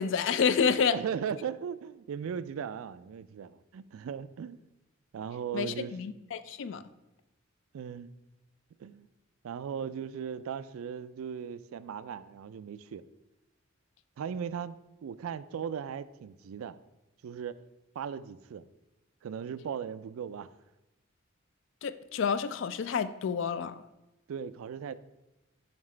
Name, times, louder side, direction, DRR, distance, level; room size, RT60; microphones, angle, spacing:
voice 1, 0.0-0.9 5.5-6.8 21.8-23.8, left 6 dB, 60° left, 13 dB, 0.3 m, -29 dB
voice 2, 0.7-4.6 5.1-6.0 7.7-8.1 8.8-9.1 9.4-13.0 14.2-16.8 17.2-17.6 18.0-18.6 19.2-20.5 24.3-25.0, right 7 dB, 80° right, 16 dB, 0.3 m, -38 dB
7.2 x 5.8 x 3.2 m, 1.0 s
head